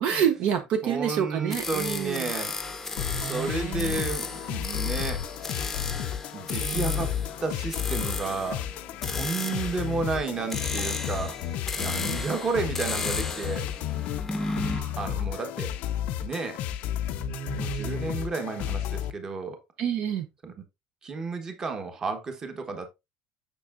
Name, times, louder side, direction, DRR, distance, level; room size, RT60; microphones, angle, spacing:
voice 1, 0.0-2.3 3.1-4.0 6.5-7.0 14.3-15.2 17.2-18.2 19.8-20.3, right 9 dB, 55° right, 0.7 m, -30 dB
voice 2, 0.8-2.5 3.2-5.2 6.3-7.1 7.4-8.6 9.1-11.4 11.8-13.7 15.0-15.7 16.2-16.6 17.6-19.6 20.4-20.5 21.0-22.9, right 4 dB, 25° right, 1.1 m, -32 dB
sound 1, 1.5-14.8, left 3 dB, 10° left, 0.7 m, -34 dB
sound 2, 3.0-19.1, left 11 dB, 60° left, 0.5 m, -32 dB
6.8 x 5.9 x 2.5 m
cardioid pair, 160°, 3 cm